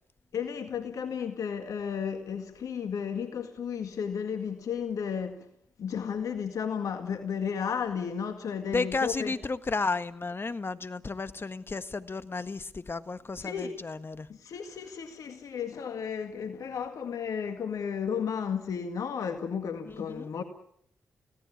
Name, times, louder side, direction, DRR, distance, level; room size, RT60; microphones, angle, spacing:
voice 1, 0.3-5.5 5.8-9.3 13.4-13.8 14.3-20.4, left 7 dB, 70° left, 2.0 m, -33 dB
voice 2, 8.7-14.3 20.1-20.3, left 3 dB, 40° left, 1.6 m, -33 dB
24.5 x 17.5 x 8.7 m
supercardioid pair, 40°, 6 cm